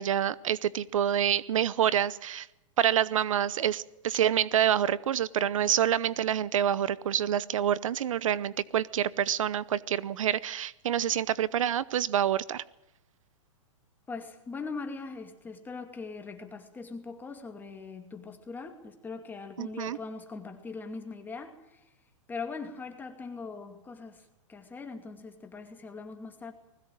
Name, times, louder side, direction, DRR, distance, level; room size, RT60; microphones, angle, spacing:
voice 1, 0.0-2.5 2.8-12.6 19.6-20.0, right 10 dB, 80° right, 20 dB, 0.8 m, -27 dB
voice 2, 14.1-21.8 22.3-24.2 24.5-26.5, left 4 dB, 10° left, 5 dB, 2.5 m, -41 dB
20.5 x 16.5 x 9.0 m, 0.91 s
hypercardioid pair, 140°, 17 cm